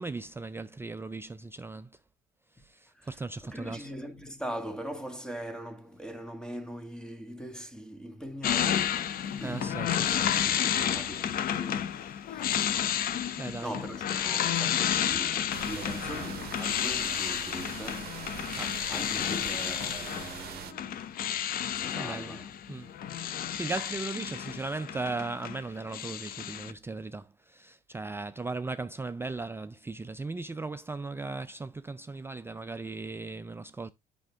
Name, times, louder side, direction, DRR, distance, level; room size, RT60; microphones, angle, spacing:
voice 1, 0.0-2.0 2.5-3.9 9.4-10.5 12.1-12.2 13.4-13.7 18.6-18.8 21.9-22.4 22.7-22.9 23.3-33.9, right 3 dB, 15° right, 0.4 m, -37 dB
voice 2, 2.9-12.5 13.4-18.6 18.9-21.2 21.7-22.9, equal, 5° left, 1.8 m, -42 dB
sound 1, 8.4-25.6 25.9-26.7, left 10 dB, 60° left, 0.7 m, -31 dB
sound 2, 15.5-20.7, right 13 dB, 65° right, 0.7 m, -42 dB
9.1 x 5.9 x 3.5 m
cardioid pair, 110°, 17 cm